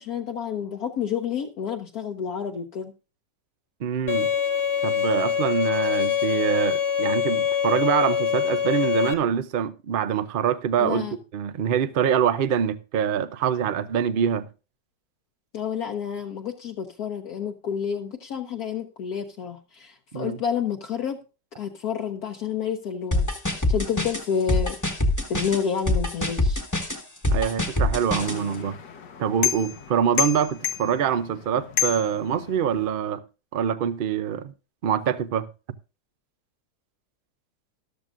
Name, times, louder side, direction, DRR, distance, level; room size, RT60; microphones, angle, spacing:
voice 1, 0.0-2.9 10.8-11.1 15.5-21.2 21.6-23.3 23.5-24.8 25.3-26.6, left 7 dB, 65° left, 1.2 m, -29 dB
voice 2, 3.8-4.3 4.8-14.5 20.1-20.4 27.3-28.8 29.2-33.2 33.5-34.5 34.8-35.5, right 8 dB, 80° right, 0.4 m, -25 dB
Bowed string instrument, 4.1-9.1, left 8 dB, 40° left, 1.0 m, -24 dB
sound 1, 23.1-28.4, left 1 dB, 10° left, 1.0 m, -24 dB
sound 2, 28.2-32.9, left 12 dB, 80° left, 1.5 m, -31 dB
13.5 x 12.0 x 2.5 m
omnidirectional pair, 1.9 m